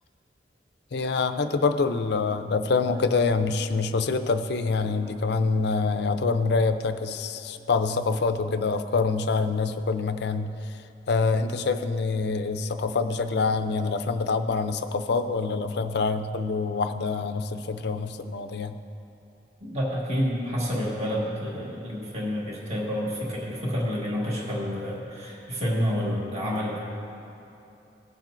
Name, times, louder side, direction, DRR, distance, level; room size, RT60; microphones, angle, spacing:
voice 1, 0.9-10.5 11.1-18.7, left 4 dB, 65° left, 9 dB, 0.5 m, -26 dB
voice 2, 5.0-5.5 19.6-26.8, equal, 35° right, -5 dB, 1.7 m, -29 dB
17.5 x 7.4 x 2.6 m, 2.8 s
head